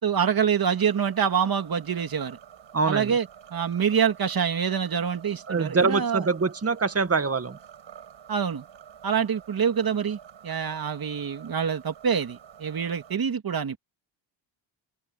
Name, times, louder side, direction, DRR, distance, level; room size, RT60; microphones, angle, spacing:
voice 1, 0.0-2.4 2.9-6.3 8.3-8.6 9.0-13.8, right 7 dB, 45° right, 2.5 m, -26 dB
sound 1, 0.7-13.2, right 9 dB, 65° right, 6.6 m, -49 dB
voice 2, 2.7-3.1 5.5-7.6, right 4 dB, 30° right, 1.9 m, -24 dB
cardioid pair, 85°, 48 cm